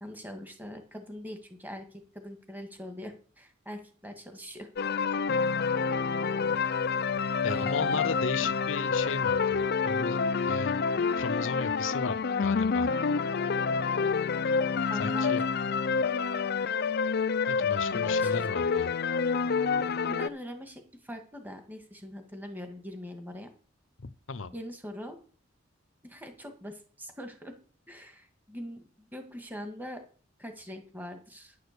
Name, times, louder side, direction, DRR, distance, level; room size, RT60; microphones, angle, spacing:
voice 1, 0.0-4.7 7.4-8.1 8.4-8.5 14.9-15.4 17.9-18.4 20.0-23.5 24.5-25.2 26.0-27.5 27.9-30.0 30.4-31.6, equal, 10° right, 5 dB, 1.8 m, -42 dB
sound 1, 4.8-20.3, left 5 dB, 55° left, 0.5 m, -28 dB
voice 2, 7.4-10.2 10.5-10.8 11.2-12.9 15.0-15.4 17.5-18.9 24.0-24.5, left 4 dB, 75° left, 15 dB, 0.8 m, -35 dB
10.0 x 6.6 x 6.7 m, 0.40 s
head